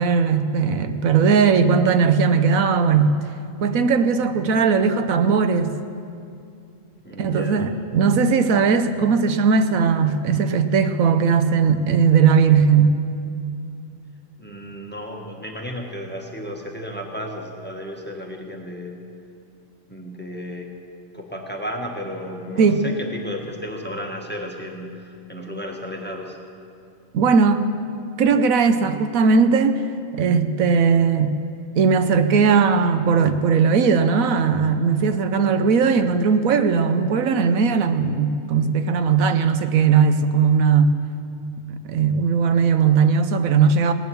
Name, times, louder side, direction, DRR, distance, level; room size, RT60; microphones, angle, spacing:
voice 1, 0.0-3.2 3.6-5.7 7.2-13.0 22.6-22.8 27.1-27.7 28.2-29.9 30.1-31.4 31.8-41.0 41.9-43.9, right 5 dB, 85° right, 1.2 m, -18 dB
voice 2, 7.0-7.7 14.4-19.1 19.9-20.7 21.1-26.4, equal, 10° left, 1.4 m, -33 dB
18.0 x 10.5 x 7.0 m
omnidirectional pair, 1.4 m